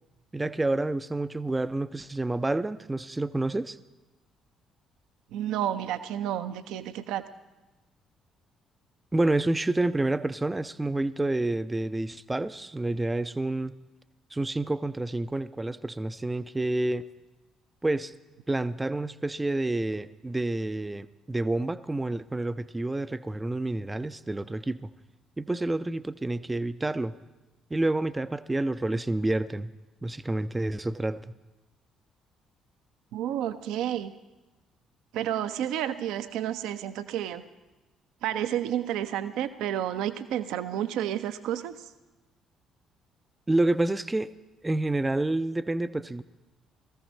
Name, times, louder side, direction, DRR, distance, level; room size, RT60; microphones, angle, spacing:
voice 1, 0.3-3.8 9.1-13.7 14.3-17.0 17.8-18.1 18.5-24.9 25.4-27.2 27.7-29.7 30.0-31.3 43.5-44.3 44.6-46.2, right 2 dB, 15° right, 14 dB, 0.5 m, -28 dB
voice 2, 5.3-7.2 33.1-34.1 35.1-37.4 38.2-41.9, right 11 dB, 60° right, 12 dB, 0.6 m, -30 dB
17.5 x 14.5 x 4.2 m, 1.1 s
figure-of-eight pair, 45°, 0 cm